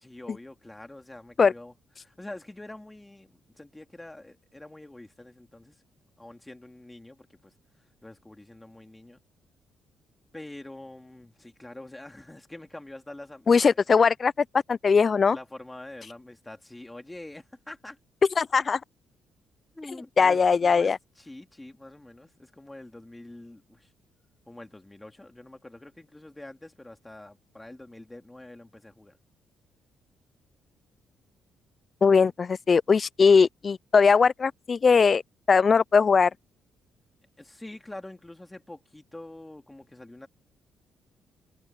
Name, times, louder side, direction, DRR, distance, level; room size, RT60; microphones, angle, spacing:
voice 1, 0.0-5.8 6.2-7.5 8.0-9.2 10.3-13.8 15.3-18.0 19.7-23.9 24.5-29.2 37.4-40.3, left 1 dB, 10° left, 2.7 m, -45 dB
voice 2, 13.5-14.3 14.7-15.4 18.4-18.8 20.2-21.0 32.0-35.2 35.5-36.3, left 5 dB, 40° left, 0.4 m, -20 dB
cardioid pair, 90°, 0 cm